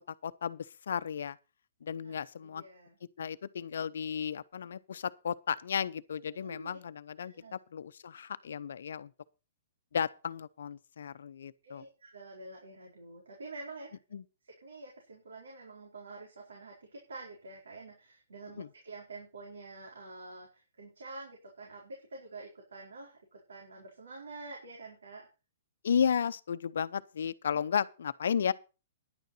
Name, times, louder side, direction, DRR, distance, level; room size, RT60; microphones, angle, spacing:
voice 1, 0.2-1.4 1.8-2.6 3.2-9.1 9.9-11.8 14.1-14.2 18.6-18.7 25.8-28.5, left 7 dB, 70° left, 0.8 m, -34 dB
voice 2, 2.0-3.0 6.3-6.8 7.2-7.6 11.6-14.0 14.4-25.3, right 3 dB, 80° right, 4.4 m, -48 dB
11.0 x 9.2 x 5.7 m
hypercardioid pair, 125°, 0 cm